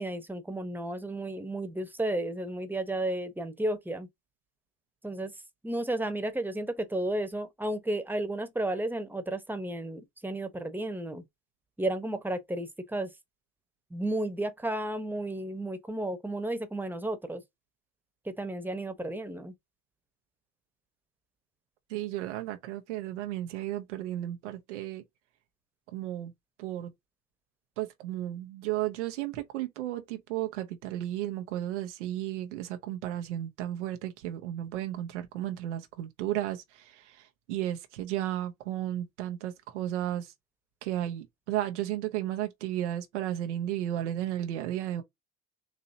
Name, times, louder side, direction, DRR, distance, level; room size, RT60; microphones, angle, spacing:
voice 1, 0.0-4.1 5.0-5.3 5.6-11.2 11.8-13.1 13.9-17.4 18.2-19.5, right 1 dB, 5° right, 1.0 m, -33 dB
voice 2, 21.9-25.0 25.9-26.3 26.6-26.9 27.8-40.3 40.8-45.0, right 13 dB, 90° right, 0.7 m, -34 dB
4.0 x 2.8 x 2.7 m
hypercardioid pair, 65°, 34 cm